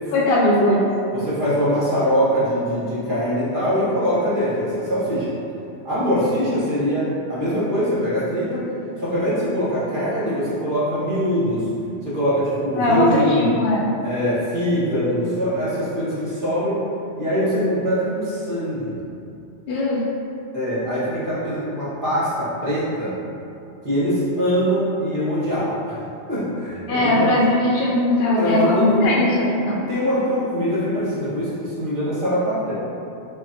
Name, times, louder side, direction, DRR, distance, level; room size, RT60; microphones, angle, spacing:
voice 1, 0.1-0.8 12.8-13.9 19.7-20.0 26.9-29.8, left 1 dB, 65° left, -4 dB, 0.8 m, -19 dB
voice 2, 1.1-5.3 5.8-8.7 9.0-11.7 12.0-13.5 14.0-16.8 17.2-19.0 20.5-23.2 23.8-26.0 26.3-27.3 28.3-29.1 29.9-32.7, equal, 50° right, -10 dB, 1.5 m, -23 dB
6.2 x 2.1 x 2.7 m, 2.7 s
omnidirectional pair, 1.1 m